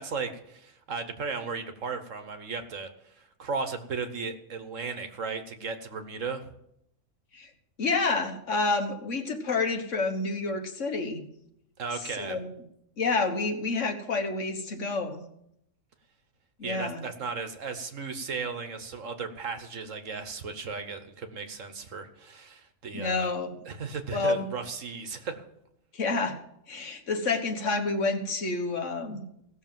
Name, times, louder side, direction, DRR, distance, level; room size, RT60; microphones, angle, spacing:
voice 1, 0.0-6.4 11.8-12.4 16.6-23.3 23.7-25.4, right 4 dB, 60° right, 8 dB, 1.4 m, -36 dB
voice 2, 7.8-11.3 12.2-12.5 13.0-15.2 16.6-17.0 22.9-23.5 24.1-24.5 25.9-26.4 26.7-29.2, left 3 dB, 55° left, 5 dB, 1.6 m, -29 dB
16.5 x 6.6 x 7.4 m, 0.77 s
omnidirectional pair, 1.6 m